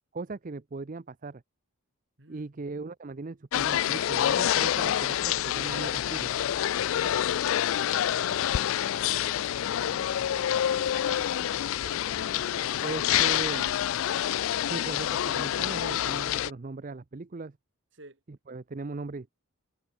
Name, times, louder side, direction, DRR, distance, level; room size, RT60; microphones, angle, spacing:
voice 1, 0.1-1.4 2.3-6.3 12.8-13.7 14.7-17.6 18.5-19.3, right 3 dB, 40° right, 0.5 m, -38 dB
voice 2, 2.2-2.6 6.9-7.3 7.8-12.9 17.9-18.2, right 2 dB, 55° right, 2.9 m, -51 dB
sound 1, 3.5-16.5, left 11 dB, 70° left, 0.3 m, -27 dB
head